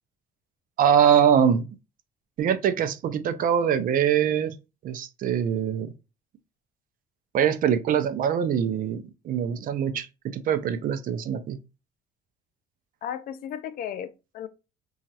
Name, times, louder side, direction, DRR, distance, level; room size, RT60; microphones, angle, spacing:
voice 1, 0.8-1.7 2.4-4.5 4.8-5.9 7.3-11.6, right 8 dB, 55° right, 0.5 m, -23 dB
voice 2, 13.0-14.5, left 9 dB, 60° left, 0.5 m, -35 dB
2.9 x 2.4 x 2.7 m
cardioid pair, 110°, 17 cm